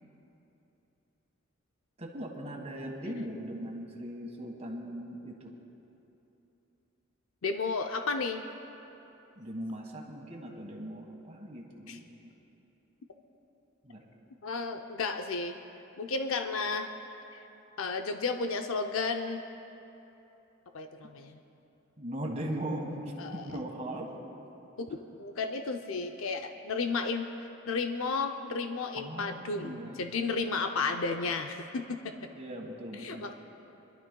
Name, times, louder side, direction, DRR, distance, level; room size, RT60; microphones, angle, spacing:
voice 1, 2.0-5.5 9.4-12.3 13.8-14.1 22.0-23.0 23.3-24.1 29.0-30.0 32.3-33.3, right 1 dB, 35° right, 0 dB, 1.5 m, -39 dB
voice 2, 7.4-8.4 11.9-12.0 14.4-15.6 16.0-16.9 17.3-17.4 17.8-19.4 20.7-21.4 23.2-23.5 24.8-32.2 32.9-33.3, left 4 dB, 85° left, 5 dB, 0.6 m, -33 dB
27.0 x 12.0 x 2.3 m, 3.0 s
head